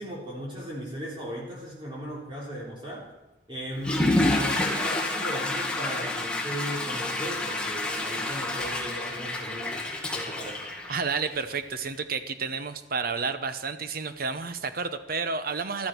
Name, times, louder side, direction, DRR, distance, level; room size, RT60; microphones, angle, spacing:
voice 1, 0.0-3.1 3.5-10.7, equal, 30° right, -5 dB, 3.5 m, -37 dB
Water / Toilet flush, 3.8-11.5, left 2 dB, 5° left, 1.9 m, -29 dB
voice 2, 10.9-15.9, right 5 dB, 55° right, 10 dB, 0.9 m, -31 dB
14.5 x 13.0 x 4.6 m, 1.0 s
head